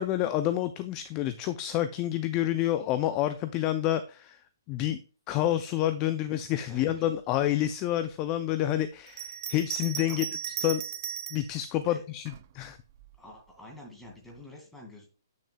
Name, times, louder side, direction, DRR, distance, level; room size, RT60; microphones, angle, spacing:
voice 1, 0.0-5.0 5.3-10.3 10.6-10.8 11.3-12.2 12.5-12.8, left 12 dB, 25° left, 11 dB, 0.4 m, -28 dB
voice 2, 6.7-7.0 9.4-9.5 10.1-10.3 11.8-12.0 13.2-15.1, left 1 dB, 5° left, 1 dB, 1.9 m, -48 dB
Bell, 9.1-11.5 12.3-13.2, right 10 dB, 40° right, 0.4 m, -37 dB
8.5 x 6.2 x 2.2 m, 0.36 s
hypercardioid pair, 150°, 2 cm